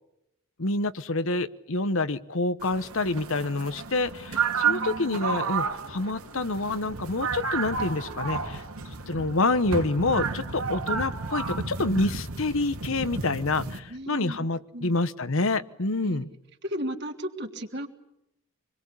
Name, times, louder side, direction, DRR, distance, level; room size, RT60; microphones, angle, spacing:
voice 1, 0.6-8.6 9.1-16.3, left 2 dB, 70° left, 13 dB, 1.1 m, -27 dB
sound 1, 2.6-13.8, right 5 dB, 85° right, 2.7 m, -32 dB
voice 2, 4.7-5.4 13.9-14.5 14.7-15.0 16.0-16.2 16.6-17.9, equal, 50° right, 3 dB, 3.1 m, -35 dB
26.5 x 21.5 x 8.4 m, 0.83 s
head